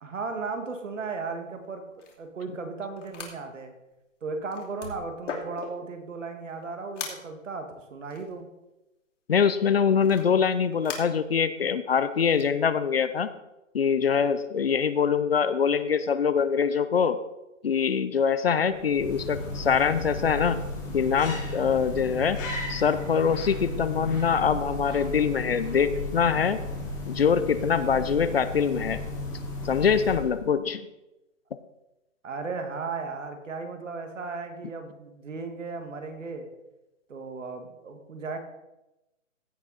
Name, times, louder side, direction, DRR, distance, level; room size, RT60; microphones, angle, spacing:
voice 1, 0.0-1.8 2.2-3.7 4.2-8.5 32.2-36.5 37.1-38.4, right 4 dB, 70° right, 6 dB, 2.1 m, -35 dB
sound 1, 1.6-1.7 1.9-2.2 3.0-3.3 3.9-4.0 4.4-5.9 6.5-6.6 7.0-7.3 8.0-8.3 10.0-11.0 12.2-12.5, left 4 dB, 65° left, 2.9 m, -38 dB
voice 2, 9.3-13.3 13.7-17.2 17.6-20.6 20.9-22.4 22.7-26.6 27.1-29.0 29.6-30.8, left 6 dB, 50° left, 13 dB, 0.6 m, -24 dB
sound 2, 18.7-30.5, left 2 dB, 15° left, 1.6 m, -34 dB
16.0 x 6.2 x 4.2 m, 0.96 s
hypercardioid pair, 170°, 39 cm